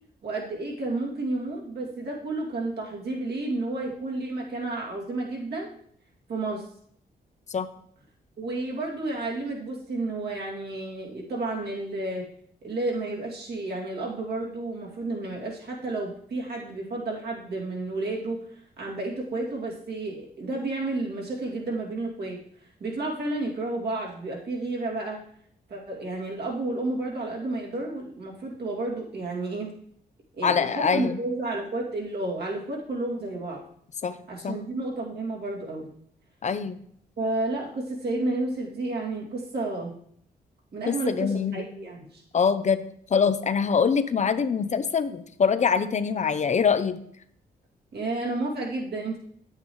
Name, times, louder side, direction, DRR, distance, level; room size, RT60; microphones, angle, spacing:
voice 1, 0.2-5.7 6.3-6.7 8.4-12.3 12.6-22.4 22.8-25.2 25.7-29.8 30.4-33.6 34.3-35.9 37.2-39.9 40.7-42.2 47.9-49.2, right 2 dB, 75° right, -3 dB, 2.5 m, -31 dB
voice 2, 30.4-31.2 34.0-34.2 34.4-34.6 36.4-36.8 40.9-41.7 42.3-42.8 43.1-47.0, left 6 dB, 45° left, 12 dB, 0.6 m, -24 dB
8.7 x 8.4 x 3.2 m, 0.66 s
cardioid pair, 80°, 17 cm